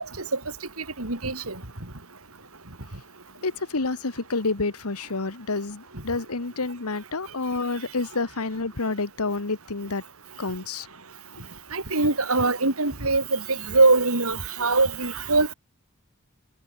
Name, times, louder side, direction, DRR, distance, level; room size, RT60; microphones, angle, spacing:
voice 1, 1.0-1.5 11.7-15.5, right 3 dB, 80° right, 4.1 m, -22 dB
voice 2, 3.4-10.0 10.4-10.9, left 3 dB, 85° left, 1.4 m, -29 dB
head